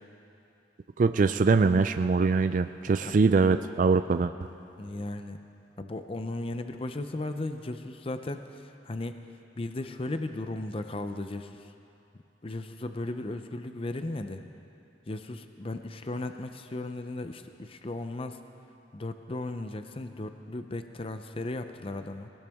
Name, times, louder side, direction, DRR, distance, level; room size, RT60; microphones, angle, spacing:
voice 1, 1.0-4.3, right 4 dB, 45° right, 10 dB, 0.3 m, -23 dB
voice 2, 4.8-5.4 5.8-9.2 9.6-11.7 12.4-14.4 15.1-18.4 18.9-22.3, left 2 dB, 30° left, 8 dB, 0.6 m, -36 dB
23.0 x 17.5 x 3.6 m, 2.7 s
head